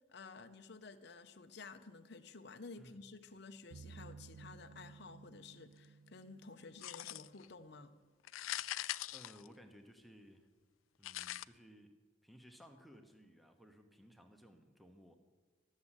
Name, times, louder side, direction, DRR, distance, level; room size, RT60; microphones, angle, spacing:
voice 1, 0.1-7.9, left 4 dB, 55° left, 7 dB, 0.7 m, -53 dB
sound 1, 3.7-7.4, right 5 dB, 65° right, 0.4 m, -56 dB
sound 2, 6.8-7.5 8.2-10.0 11.0-11.4, left 14 dB, 90° left, 0.4 m, -42 dB
voice 2, 9.1-10.5 11.0-11.9 12.2-15.1, equal, ahead, 4 dB, 1.0 m, -59 dB
13.0 x 7.4 x 9.8 m, 1.5 s
head